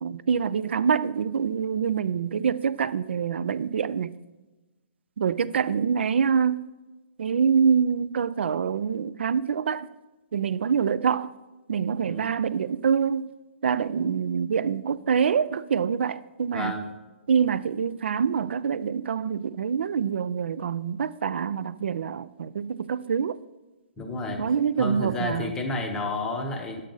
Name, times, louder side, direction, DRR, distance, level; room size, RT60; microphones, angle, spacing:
voice 1, 0.0-4.2 5.2-6.7 7.2-9.9 10.3-11.3 11.7-13.3 13.6-16.8 17.3-23.4 24.4-25.5, right 7 dB, 65° right, 0.4 m, -25 dB
voice 2, 16.5-16.9 24.0-24.4 24.8-26.8, left 2 dB, 10° left, 0.7 m, -30 dB
9.6 x 7.5 x 3.8 m
hypercardioid pair, 175°, 6 cm